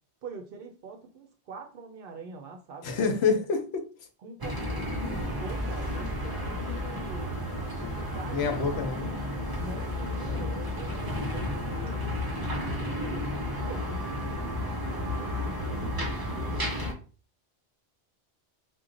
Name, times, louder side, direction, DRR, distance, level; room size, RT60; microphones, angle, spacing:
voice 1, 0.2-3.2 4.2-7.3 7.8-8.8 9.6-12.1 12.4-13.3 13.6-14.6 14.8-16.7, right 4 dB, 60° right, 0.7 m, -44 dB
voice 2, 2.8-3.9 8.3-9.1, left 5 dB, 70° left, 0.9 m, -27 dB
sound 1, 4.4-16.9, left 1 dB, 30° right, 0.5 m, -32 dB
3.0 x 2.1 x 3.8 m
omnidirectional pair, 1.1 m